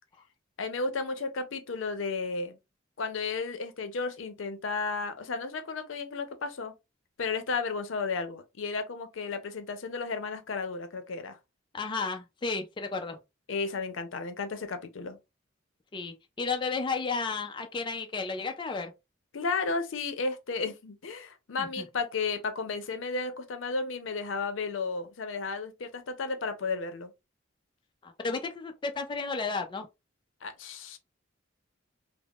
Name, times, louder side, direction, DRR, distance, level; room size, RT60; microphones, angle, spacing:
voice 1, 0.6-2.6 3.0-6.7 7.2-11.4 13.5-15.2 19.3-27.1 30.4-31.0, left 4 dB, 90° left, 0.6 m, -33 dB
voice 2, 11.7-13.2 15.9-18.9 21.6-21.8 28.0-29.9, left 4 dB, 25° left, 0.4 m, -33 dB
3.5 x 2.0 x 2.3 m
head